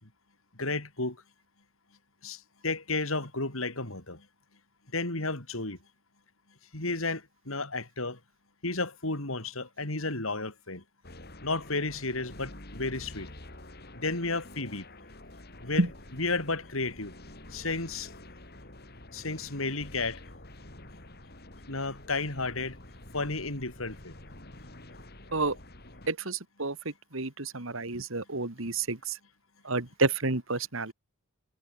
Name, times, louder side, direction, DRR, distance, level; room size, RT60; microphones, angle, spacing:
voice 1, 0.6-1.2 2.2-4.2 4.9-5.8 6.7-8.2 8.6-10.8 11.4-13.3 13.9-14.8 15.6-17.1 17.5-18.1 19.1-20.2 21.7-22.8 23.1-24.1, left 3 dB, 70° left, 4.6 m, -32 dB
sound 1, 11.0-26.1, left 1 dB, 45° left, 5.8 m, -48 dB
voice 2, 26.1-26.7 27.1-29.0 29.7-30.9, right 3 dB, 65° right, 2.3 m, -29 dB
head